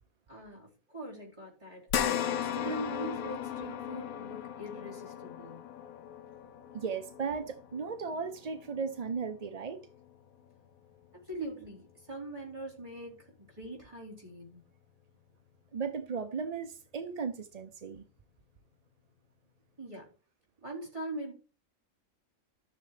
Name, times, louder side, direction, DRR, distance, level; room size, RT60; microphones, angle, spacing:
voice 1, 0.3-5.7 11.1-14.6 19.8-20.1 20.6-21.3, right 2 dB, 20° right, 4.4 m, -42 dB
sound 1, 1.9-10.5 11.0-11.1 12.5-12.6, left 9 dB, 80° left, 1.2 m, -37 dB
voice 2, 6.7-9.8 15.7-18.0, right 5 dB, 45° right, 0.5 m, -36 dB
13.5 x 6.8 x 3.3 m
omnidirectional pair, 1.5 m